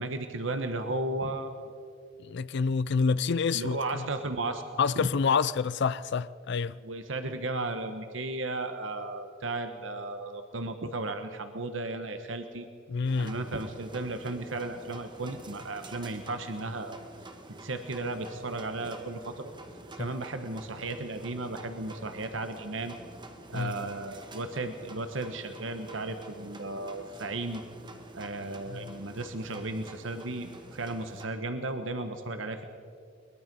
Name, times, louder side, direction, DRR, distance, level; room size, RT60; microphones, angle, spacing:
voice 1, 0.0-1.7 3.5-4.6 4.9-5.1 6.8-12.7 13.2-17.0 17.6-19.5 20.0-22.9 23.5-27.6 28.1-32.6, right 2 dB, 80° right, 1.2 m, -35 dB
voice 2, 2.2-3.8 4.8-6.8 12.9-13.3 20.0-20.1 23.5-23.7 28.7-28.8, left 5 dB, 60° left, 0.5 m, -27 dB
sound 1, 13.1-31.3, right 2 dB, 25° right, 1.8 m, -48 dB
22.0 x 21.5 x 5.4 m
head